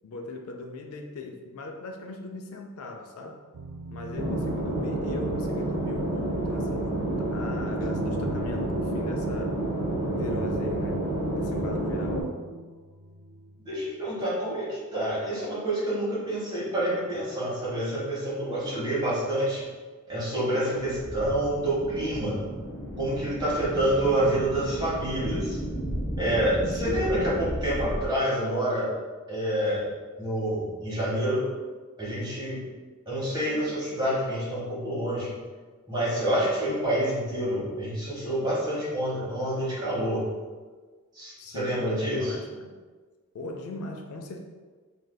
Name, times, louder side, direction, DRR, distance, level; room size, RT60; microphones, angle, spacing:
voice 1, 0.0-3.4 3.9-7.0 7.3-9.6 10.1-11.0 11.4-12.3 20.8-21.2 26.8-27.1 41.4-42.8 43.3-44.4, left 3 dB, 75° left, 3 dB, 0.4 m, -40 dB
sound 1, 3.5-14.2, right 2 dB, 80° right, 0.3 m, -41 dB
sound 2, 4.1-12.2, right 1 dB, 40° left, 0.9 m, -29 dB
voice 2, 13.6-19.7 20.1-22.4 23.0-25.6 26.2-28.9 29.3-29.8 30.2-31.5 32.0-32.6 33.1-35.3 35.9-40.3 41.1-42.4, right 1 dB, 20° right, -8 dB, 1.1 m, -28 dB
sound 3, 20.8-28.0, equal, 15° left, 0.5 m, -34 dB
3.3 x 2.6 x 2.2 m, 1.4 s
head